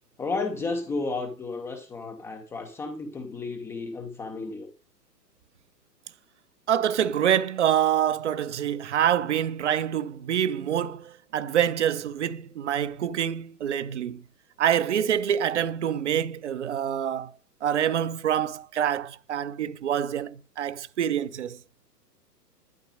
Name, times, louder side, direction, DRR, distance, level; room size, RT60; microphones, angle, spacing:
voice 1, 0.2-4.7, left 3 dB, 5° left, 0.6 m, -32 dB
voice 2, 6.7-14.2 14.6-17.3 17.6-21.6, right 9 dB, 45° right, 0.9 m, -26 dB
12.0 x 9.9 x 5.0 m
figure-of-eight pair, 115°, 48 cm